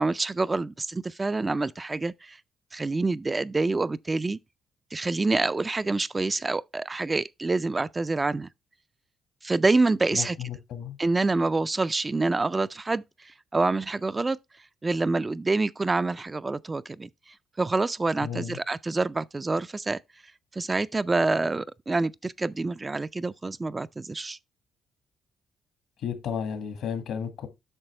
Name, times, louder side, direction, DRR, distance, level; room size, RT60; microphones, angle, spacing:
voice 1, 0.0-2.4 2.7-4.4 4.9-8.5 9.4-10.4 11.0-14.4 14.8-17.1 17.6-20.0 20.5-24.4, right 3 dB, 25° right, 0.3 m, -27 dB
voice 2, 10.1-11.0 18.2-18.6 26.0-27.5, left 7 dB, 80° left, 1.8 m, -33 dB
8.8 x 5.9 x 3.3 m
cardioid pair, 90°, 0 cm